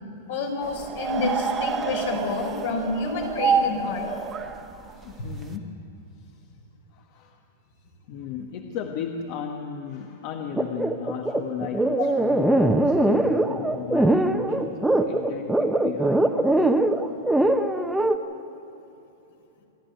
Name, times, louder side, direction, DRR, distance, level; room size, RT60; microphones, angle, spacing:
voice 1, 0.3-4.1 12.0-12.1, left 3 dB, 75° left, 1 dB, 5.2 m, -28 dB
sound 1, 0.6-5.5, right 5 dB, 20° right, 1.3 m, -28 dB
voice 2, 4.9-5.9 6.2-6.3 6.9-7.4 8.1-16.2, left 7 dB, 50° left, 4 dB, 1.3 m, -35 dB
sound 2, 10.6-18.2, right 1 dB, 5° right, 1.0 m, -21 dB
27.0 x 11.5 x 9.3 m, 2.9 s
hypercardioid pair, 130°, 0 cm